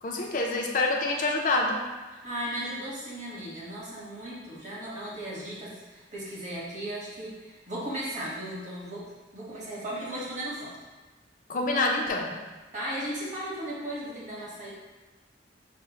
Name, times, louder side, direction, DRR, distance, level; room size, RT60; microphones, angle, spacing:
voice 1, 0.0-1.9 11.5-12.4, left 2 dB, 45° left, 1 dB, 0.5 m, -26 dB
voice 2, 2.2-9.1 9.3-10.7 12.7-14.7, right 1 dB, 40° right, -7 dB, 1.3 m, -36 dB
5.9 x 2.0 x 3.0 m, 1.3 s
head